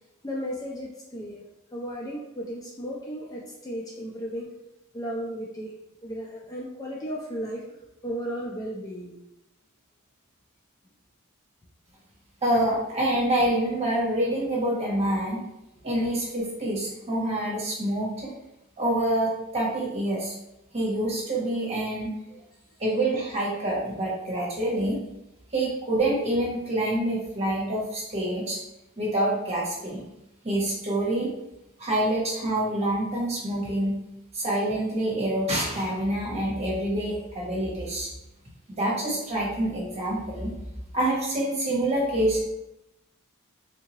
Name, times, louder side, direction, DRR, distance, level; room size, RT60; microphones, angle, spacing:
voice 1, 0.2-1.4 1.7-4.5 4.9-5.8 6.0-9.2, equal, 15° left, -3 dB, 0.4 m, -35 dB
voice 2, 12.4-15.4 15.8-18.3 18.8-20.3 20.7-22.1 22.8-25.0 25.5-28.6 29.0-30.0 30.4-31.3 31.8-34.0 34.3-38.1 38.7-40.5 40.9-42.4, right 1 dB, 30° right, -4 dB, 1.2 m, -26 dB
3.5 x 2.7 x 3.1 m, 0.88 s
head